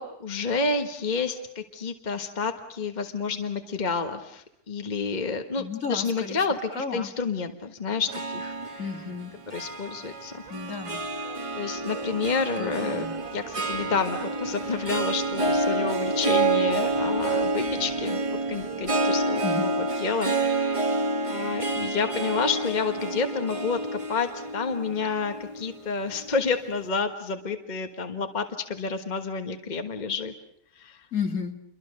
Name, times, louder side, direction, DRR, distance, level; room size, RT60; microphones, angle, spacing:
voice 1, 0.0-8.9 9.5-10.4 11.6-20.9 21.3-30.3 30.7-31.1, left 4 dB, 30° left, 6 dB, 1.6 m, -30 dB
voice 2, 5.6-6.4 6.8-7.1 8.8-9.3 10.5-11.0 12.6-13.1 19.4-19.7 31.1-31.5, left 5 dB, 55° left, 5 dB, 2.6 m, -32 dB
Harp, 8.1-26.5, right 2 dB, 20° right, 1.6 m, -28 dB
sound 1, 10.4-19.3, right 5 dB, 75° right, 2.6 m, -44 dB
28.5 x 23.5 x 6.6 m, 0.76 s
omnidirectional pair, 1.6 m